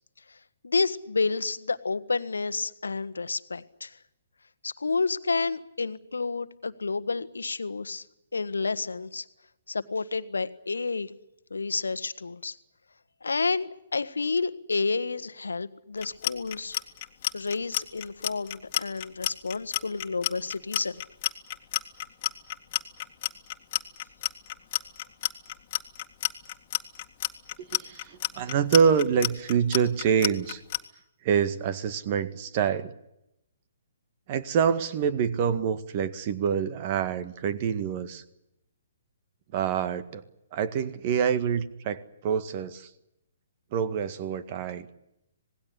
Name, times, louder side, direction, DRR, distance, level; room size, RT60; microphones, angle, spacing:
voice 1, 0.6-3.9 4.6-8.0 8.3-9.2 9.7-11.1 11.5-12.6 13.2-16.8 17.3-21.0, left 4 dB, 75° left, 12 dB, 1.4 m, -30 dB
Clock, 16.0-30.8, left 14 dB, 35° left, 2.0 m, -30 dB
voice 2, 27.7-30.6 31.2-32.9 34.3-38.2 39.5-40.2 40.5-42.9 43.7-44.9, right 7 dB, 35° right, 12 dB, 1.8 m, -26 dB
26.5 x 19.5 x 8.4 m, 0.85 s
figure-of-eight pair, 130°, 0 cm